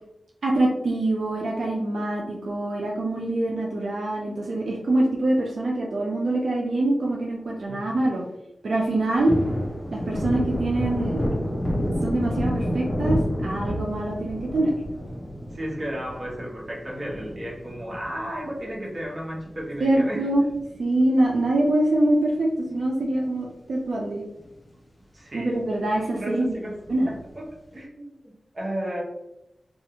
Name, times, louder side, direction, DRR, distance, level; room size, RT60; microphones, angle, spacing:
voice 1, 0.4-8.2 8.6-9.3 9.9-11.3 12.0-14.7 19.8-20.4 20.8-24.2 25.3-26.5 26.9-27.1, right 1 dB, 80° right, -2 dB, 0.4 m, -24 dB
Thunder, 8.9-19.6 20.0-20.1 20.4-21.9 22.2-22.4 22.7-23.5 23.9-24.0 24.4-24.5 26.8-27.4, equal, 30° left, 0.6 m, -30 dB
voice 2, 15.5-20.3 25.1-25.5 26.2-26.8 27.0-29.0, equal, 45° right, -4 dB, 0.9 m, -33 dB
2.4 x 2.4 x 2.8 m, 0.88 s
wide cardioid pair, 90°, 0 cm